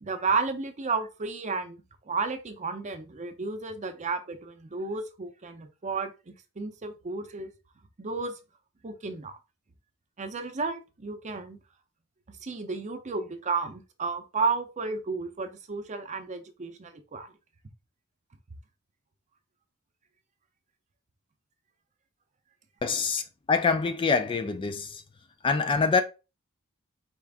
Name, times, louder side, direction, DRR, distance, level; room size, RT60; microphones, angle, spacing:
voice 1, 0.0-1.8 2.1-7.5 8.0-8.3 8.8-9.3 10.2-11.6 12.4-17.3, right 4 dB, 35° right, 0.6 m, -32 dB
voice 2, 22.8-23.2 23.5-25.0 25.4-26.0, left 4 dB, 25° left, 0.3 m, -25 dB
4.3 x 2.5 x 3.5 m
head